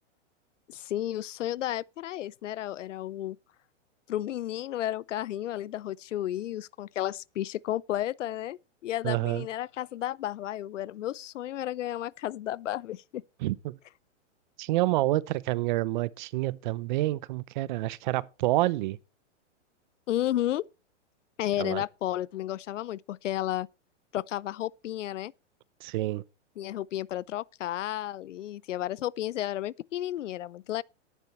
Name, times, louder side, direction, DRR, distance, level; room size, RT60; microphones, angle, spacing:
voice 1, 0.7-3.4 4.1-13.2 20.1-20.7 21.4-23.7 24.1-25.3 26.6-30.8, left 13 dB, 80° left, 0.6 m, -32 dB
voice 2, 9.0-9.5 13.4-13.8 14.6-19.0 21.6-21.8 25.8-26.2, right 17 dB, 40° right, 0.7 m, -28 dB
13.0 x 10.5 x 3.1 m
hypercardioid pair, 140°, 37 cm